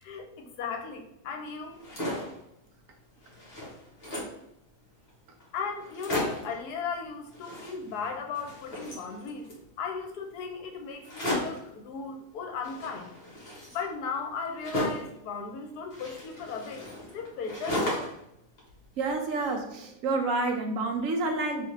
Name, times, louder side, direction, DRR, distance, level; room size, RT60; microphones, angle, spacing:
voice 1, 0.0-1.8 5.5-9.5 9.8-13.1 13.6-18.1, left 5 dB, 80° left, 4 dB, 1.2 m, -36 dB
sound 1, 1.7-2.4 2.9-3.0 3.2-4.4 5.1-5.2 5.4-5.5 5.8-6.6 7.3-8.1 8.3-9.6 11.0-11.7 12.6-15.2 15.9-18.2 18.6-19.5, left 1 dB, 40° left, 1.4 m, -35 dB
voice 2, 19.0-21.7, right 3 dB, 65° right, 4 dB, 1.0 m, -29 dB
3.9 x 3.5 x 3.2 m, 0.80 s
omnidirectional pair, 1.7 m